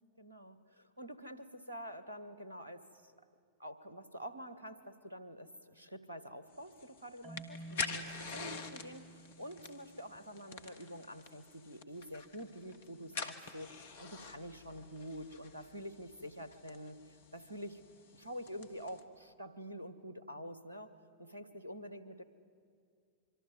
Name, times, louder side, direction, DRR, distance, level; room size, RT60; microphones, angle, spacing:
voice 1, 0.2-3.1 3.6-17.8 18.1-20.9 21.2-22.2, equal, 80° right, 12 dB, 1.5 m, -47 dB
sound 1, 6.5-19.0, left 5 dB, 60° left, 1.7 m, -47 dB
Marimba xylophone, 7.2-10.2, right 2 dB, 35° right, 3.6 m, -51 dB
25.5 x 24.0 x 9.4 m, 2.3 s
figure-of-eight pair, 90°, 0 cm